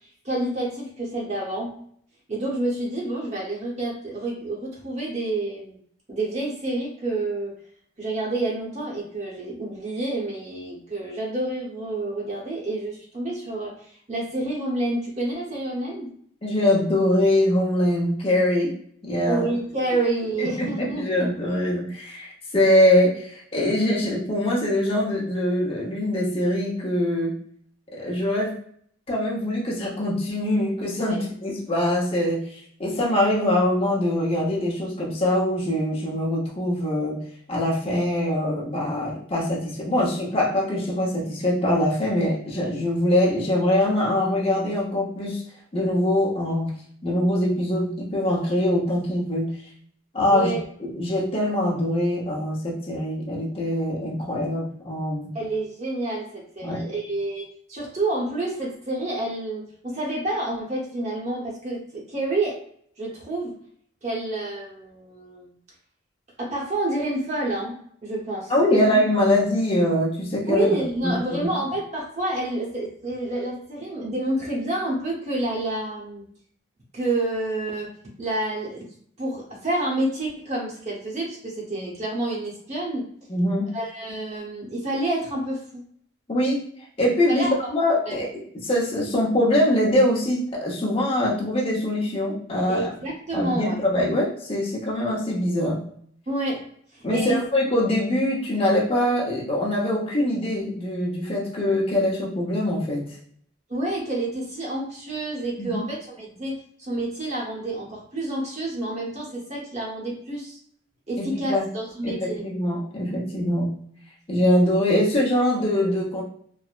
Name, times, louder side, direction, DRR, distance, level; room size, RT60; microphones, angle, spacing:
voice 1, 0.2-1.8 2.3-5.8 6.1-7.6 8.0-16.1 19.3-21.3 31.1-31.2 50.3-50.7 55.3-62.6 63.0-63.6 64.0-65.5 66.4-67.8 68.0-68.9 70.5-76.3 76.9-77.9 78.2-78.9 79.2-83.1 83.7-85.8 87.3-87.7 88.1-88.2 92.7-93.8 96.3-96.6 96.9-97.4 103.7-110.6 111.1-112.4, right 2 dB, 35° right, -3 dB, 0.8 m, -29 dB
voice 2, 16.4-18.7 19.0-19.5 20.4-27.3 27.9-28.6 29.1-37.2 37.5-45.4 45.7-46.7 47.0-49.5 50.1-50.5 50.8-55.3 56.6-56.8 68.5-70.8 71.0-71.5 83.3-83.7 86.3-86.6 87.0-88.3 88.6-92.9 93.3-95.8 97.0-103.1 105.6-105.8 111.2-111.7 112.0-113.7 114.3-116.2, left 1 dB, 30° left, -5 dB, 0.8 m, -23 dB
3.1 x 2.0 x 2.4 m, 0.62 s
head